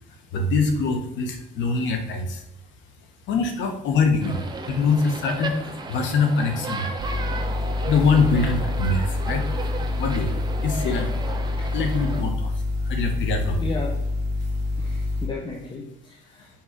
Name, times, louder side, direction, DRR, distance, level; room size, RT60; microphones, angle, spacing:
voice 1, 0.3-2.4 3.3-6.9 7.9-9.6 10.0-10.4 10.6-11.1 11.7-12.5 12.9-13.7, left 4 dB, 75° left, 5 dB, 1.3 m, -24 dB
sound 1, 4.2-12.2, right 3 dB, 20° right, 1.0 m, -34 dB
sound 2, 7.0-15.3, left 2 dB, 60° right, 0.9 m, -27 dB
voice 2, 13.6-14.0 14.8-16.5, left 3 dB, 25° left, -1 dB, 1.2 m, -34 dB
5.8 x 5.4 x 5.1 m, 0.81 s
cardioid pair, 105°, 19 cm